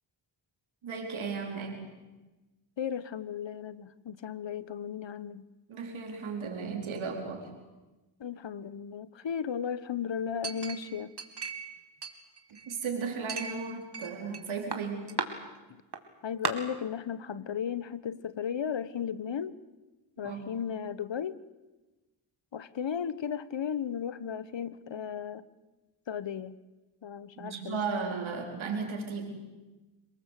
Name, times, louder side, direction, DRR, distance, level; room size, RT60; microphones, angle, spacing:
voice 1, 0.8-1.9 5.7-7.5 12.7-15.1 20.2-20.4 27.4-29.3, right 5 dB, 90° right, 2 dB, 4.6 m, -35 dB
voice 2, 2.8-5.4 8.2-11.1 15.7-15.8 16.2-19.6 20.2-21.4 22.5-25.5 26.1-26.6 27.0-27.8, left 8 dB, 70° left, 16 dB, 1.3 m, -35 dB
Chink clink, 10.4-11.7 12.0-12.8 13.3-14.4 14.7-15.3 15.9-16.0 16.4-16.5, right 5 dB, 60° right, 2.9 m, -36 dB
27.5 x 19.0 x 8.5 m, 1.1 s
cardioid pair, 45°, 46 cm